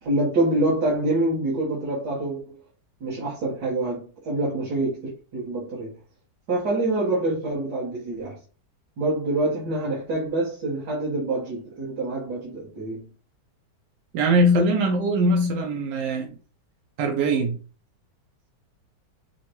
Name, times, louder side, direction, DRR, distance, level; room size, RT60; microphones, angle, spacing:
voice 1, 0.0-2.6 3.0-6.0 6.5-8.4 9.0-13.1, right 2 dB, 65° right, 1.8 m, -26 dB
voice 2, 14.1-16.3 17.0-17.6, right 1 dB, 85° right, 1.4 m, -21 dB
5.5 x 2.2 x 3.0 m
omnidirectional pair, 1.9 m